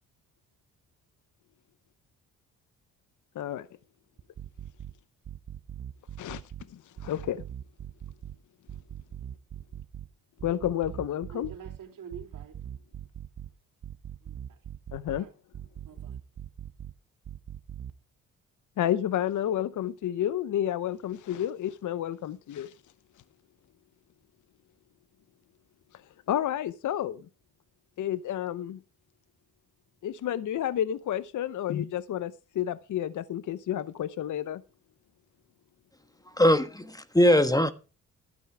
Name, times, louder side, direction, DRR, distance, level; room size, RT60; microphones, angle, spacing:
voice 1, 3.3-3.7 6.2-6.4 6.7-7.4 10.4-11.5 14.9-15.3 18.8-22.7 26.3-27.3 28.0-28.8 30.0-34.6, left 11 dB, 55° left, 0.8 m, -30 dB
sound 1, 4.2-4.9 5.2-6.6 7.0-8.4 8.7-10.1 10.4-11.8 12.1-13.5 13.8-15.2 15.5-16.9 17.2-17.9, right 10 dB, 45° right, 1.0 m, -41 dB
voice 2, 11.3-12.5 14.2-14.6 15.1-15.3 15.9-16.2, right 7 dB, 65° right, 3.1 m, -46 dB
voice 3, 36.4-37.7, left 1 dB, 10° left, 1.4 m, -21 dB
12.0 x 9.2 x 4.8 m
supercardioid pair, 60°, 36 cm